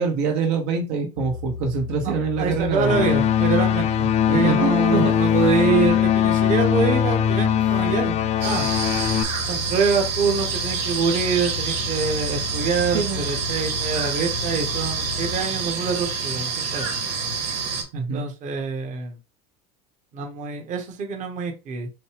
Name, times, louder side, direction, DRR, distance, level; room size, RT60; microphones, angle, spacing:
voice 1, 0.0-3.0 4.3-5.1 12.9-13.2 17.9-18.3, right 5 dB, 60° right, 1.0 m, -25 dB
sound 1, 1.2-15.5, left 6 dB, 85° left, 0.8 m, -35 dB
voice 2, 2.0-8.1 8.4-8.7 9.5-16.9 17.9-19.2 20.1-21.9, right 5 dB, 35° right, 1.1 m, -25 dB
sound 2, 2.8-9.2, left 9 dB, 35° left, 0.4 m, -21 dB
sound 3, 8.4-17.8, right 5 dB, 85° right, 2.0 m, -27 dB
6.2 x 2.2 x 3.2 m
supercardioid pair, 140°, 20 cm